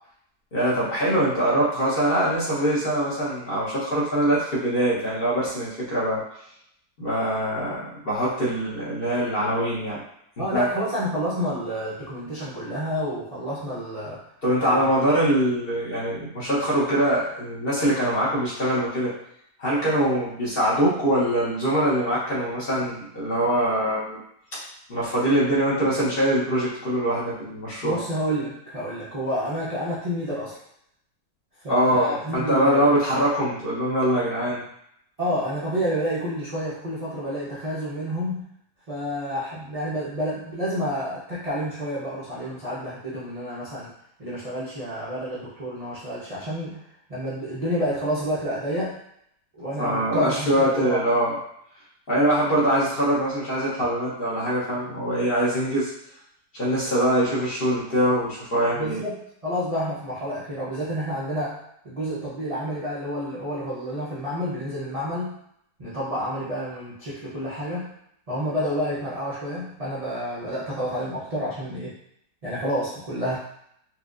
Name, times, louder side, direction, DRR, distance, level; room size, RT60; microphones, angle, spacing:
voice 1, 0.5-6.2 7.0-10.0 10.5-10.7 14.4-19.1 19.6-24.2 24.9-28.0 31.7-34.6 49.8-51.3 52.1-55.9 56.6-59.0, right 1 dB, 40° left, -7 dB, 1.0 m, -23 dB
voice 2, 10.4-14.2 14.6-14.9 27.8-30.6 31.6-32.9 35.2-38.4 38.9-43.9 44.2-46.8 47.1-49.0 49.5-51.0 58.7-61.6 61.8-65.4 65.8-67.9 68.3-71.9 72.4-73.4, equal, 45° right, -9 dB, 0.4 m, -29 dB
4.4 x 2.3 x 2.5 m, 0.73 s
omnidirectional pair, 1.8 m